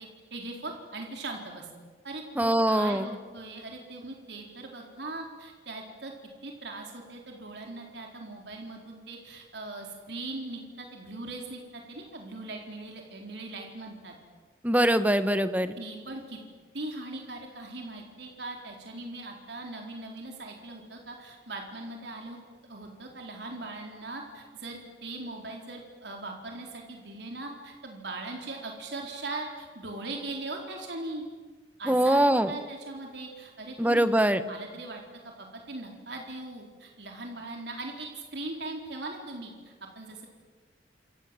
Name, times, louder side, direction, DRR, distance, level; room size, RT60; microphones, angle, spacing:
voice 1, 0.0-1.7 2.0-6.1 6.4-14.1 15.8-16.4 16.7-22.4 22.6-31.2 31.8-34.1 34.4-40.3, right 2 dB, 70° right, 1 dB, 4.1 m, -40 dB
voice 2, 2.4-3.0 14.6-15.7 31.9-32.5 33.8-34.4, right 1 dB, 10° right, 11 dB, 1.2 m, -23 dB
29.0 x 26.5 x 7.7 m, 1.4 s
head